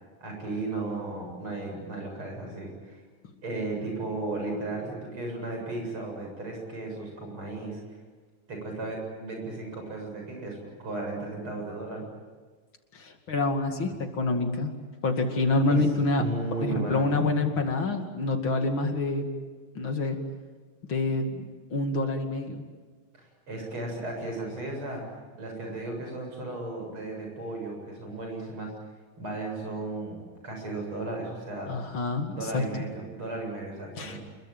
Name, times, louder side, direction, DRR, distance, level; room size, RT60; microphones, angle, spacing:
voice 1, 0.2-3.0 3.4-7.8 8.5-12.1 15.7-15.8 16.2-17.2 23.1-28.8 29.2-31.8 32.3-34.2, right 2 dB, 75° right, 1 dB, 8.6 m, -35 dB
voice 2, 12.9-14.7 15.0-16.2 16.6-19.3 19.7-20.2 20.9-22.6 31.7-32.6 34.0-34.2, left 2 dB, 65° left, 5 dB, 3.1 m, -27 dB
28.5 x 22.0 x 9.2 m, 1.4 s
omnidirectional pair, 2.4 m